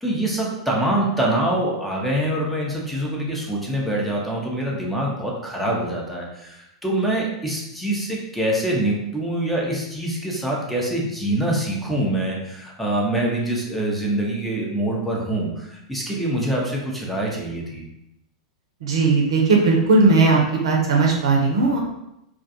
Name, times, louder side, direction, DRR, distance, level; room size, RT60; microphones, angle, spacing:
voice 1, 0.0-17.8, right 1 dB, 5° left, -3 dB, 0.6 m, -25 dB
voice 2, 18.8-21.8, right 3 dB, 65° right, -1 dB, 0.6 m, -17 dB
2.3 x 2.3 x 2.7 m, 0.84 s
figure-of-eight pair, 95°, 3 cm